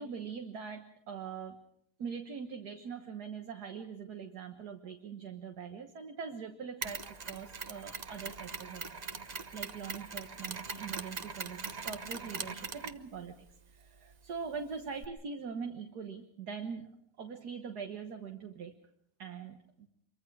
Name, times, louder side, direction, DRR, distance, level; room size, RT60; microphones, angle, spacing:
voice 1, 0.0-1.6 2.0-13.3 13.7-16.9 17.2-18.7 19.2-19.9, right 6 dB, 60° right, 4 dB, 1.9 m, -42 dB
Mechanisms, 6.8-15.1, right 5 dB, 40° right, 0.6 m, -42 dB
26.0 x 23.5 x 4.8 m, 0.73 s
omnidirectional pair, 2.0 m